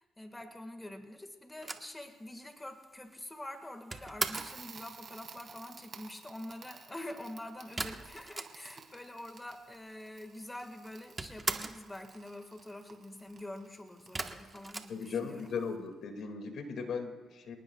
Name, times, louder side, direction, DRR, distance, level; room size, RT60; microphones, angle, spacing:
voice 1, 0.0-15.5, left 1 dB, 15° left, 5 dB, 1.7 m, -46 dB
sound 1, 1.6-4.6 7.8-8.9 9.2-9.3 9.5-10.3 10.6-11.9 14.1-15.6, right 3 dB, 25° right, 1.3 m, -39 dB
Crackle, 4.3-15.9, right 6 dB, 50° right, 2.6 m, -54 dB
voice 2, 14.9-17.6, left 5 dB, 70° left, 5 dB, 2.2 m, -37 dB
27.5 x 19.0 x 2.4 m, 1.3 s
cardioid pair, 90°, 0 cm